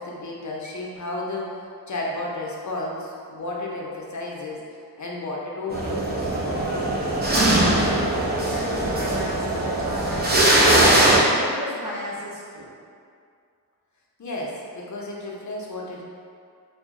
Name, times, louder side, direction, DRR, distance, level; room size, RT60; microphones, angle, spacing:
voice 1, 0.0-1.6 1.9-6.4 14.2-16.0, left 2 dB, 50° left, -3 dB, 0.6 m, -32 dB
sound 1, 5.7-11.2, right 1 dB, 25° right, 0.6 m, -20 dB
voice 2, 7.4-10.8 11.3-12.7, equal, 55° right, -6 dB, 0.8 m, -35 dB
2.8 x 2.2 x 3.6 m, 2.3 s
wide cardioid pair, 80°, 39 cm